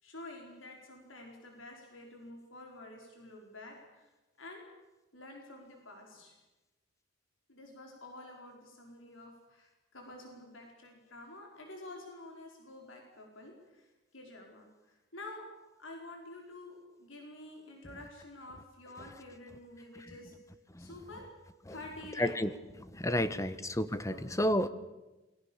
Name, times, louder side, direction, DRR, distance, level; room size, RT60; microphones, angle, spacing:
voice 1, 0.0-4.1 4.4-4.7 5.1-6.4 7.5-15.5 15.8-20.4 20.8-21.3 21.7-22.3 23.1-23.5 24.1-24.2, left 2 dB, 90° left, 1 dB, 5.1 m, -49 dB
voice 2, 22.2-22.5 22.9-24.7, left 1 dB, 15° left, 13 dB, 1.2 m, -30 dB
28.0 x 22.5 x 7.3 m, 1.1 s
head